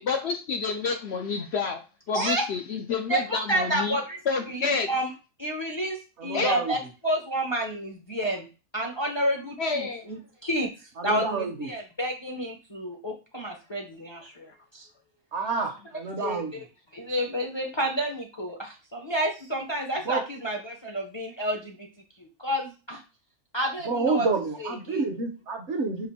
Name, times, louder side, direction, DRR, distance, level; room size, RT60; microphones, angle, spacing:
voice 1, 0.0-1.8 2.1-4.0 4.3-4.9 6.3-6.6 9.6-10.0, left 4 dB, 65° left, 4 dB, 0.7 m, -28 dB
voice 2, 2.1-2.5 3.1-4.2 4.5-5.1 5.4-8.5 8.7-10.7 11.0-14.9 16.2-16.6 16.9-21.9 22.2-23.0 23.5-24.3 24.6-25.0, right 1 dB, 30° left, 1 dB, 0.6 m, -30 dB
voice 3, 6.2-6.7 11.0-11.7 15.3-16.5 20.0-20.2 23.8-26.1, right 4 dB, 60° right, 5 dB, 1.0 m, -29 dB
5.1 x 2.5 x 4.1 m, 0.31 s
omnidirectional pair, 1.5 m